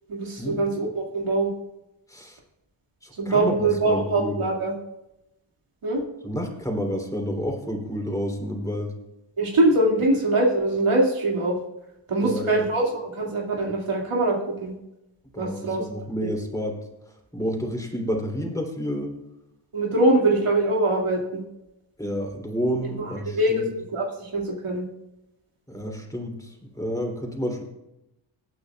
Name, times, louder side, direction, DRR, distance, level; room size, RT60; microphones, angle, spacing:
voice 1, 0.1-1.5 3.2-4.7 5.8-6.0 9.4-11.5 12.1-14.7 15.4-15.8 19.7-21.4 23.0-24.8, right 2 dB, 85° right, -2 dB, 2.4 m, -23 dB
voice 2, 3.0-4.4 6.2-8.9 12.2-12.6 15.3-16.8 17.3-19.1 22.0-23.7 25.7-27.6, equal, 5° left, 2 dB, 3.1 m, -30 dB
24.5 x 8.9 x 2.4 m, 0.90 s
cardioid pair, 65°, 50 cm